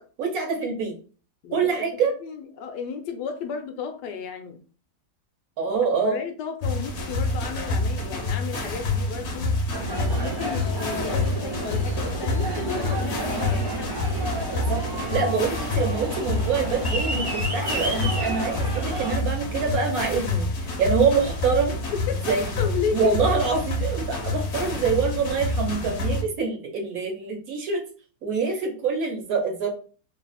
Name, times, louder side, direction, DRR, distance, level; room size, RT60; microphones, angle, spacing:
voice 1, 0.2-0.9 1.5-2.1 5.6-6.2 14.7-14.8 15.1-20.5 20.8-21.8 22.2-27.8 28.2-29.7, right 5 dB, 65° right, 2 dB, 1.1 m, -25 dB
voice 2, 1.4-4.6 6.0-9.5 9.9-13.9 22.1-22.2 22.6-23.3, left 6 dB, 75° left, 6 dB, 1.2 m, -33 dB
sound 1, 6.6-26.2, left 2 dB, 55° left, 0.9 m, -28 dB
Aircraft, 9.7-19.2, right 2 dB, 25° right, 0.6 m, -32 dB
3.1 x 2.4 x 4.0 m, 0.39 s
omnidirectional pair, 1.9 m